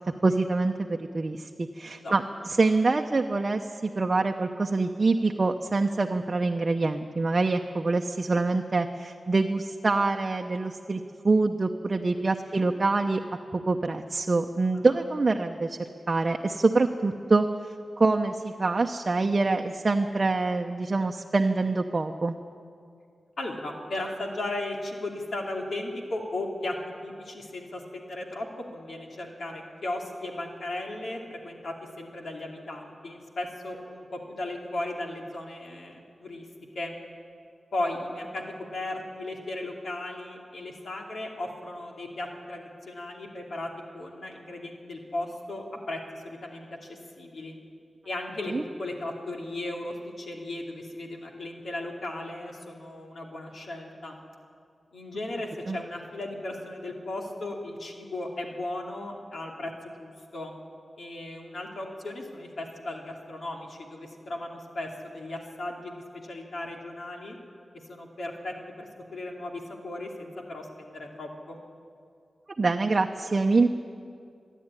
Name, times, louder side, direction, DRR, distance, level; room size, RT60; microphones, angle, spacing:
voice 1, 0.2-13.2 13.5-15.8 16.1-17.5 18.0-22.3 48.5-48.6 55.7-55.8 72.6-73.7, right 3 dB, 35° right, 3 dB, 0.7 m, -25 dB
voice 2, 23.4-26.7 27.0-28.5 28.7-36.5 36.7-36.9 37.7-38.4 38.7-47.6 48.0-48.5 48.8-54.2 54.9-60.5 61.0-67.4 67.9-71.6, left 2 dB, 70° left, 0 dB, 2.7 m, -36 dB
27.0 x 11.0 x 9.8 m, 2.4 s
wide cardioid pair, 125°, 0 cm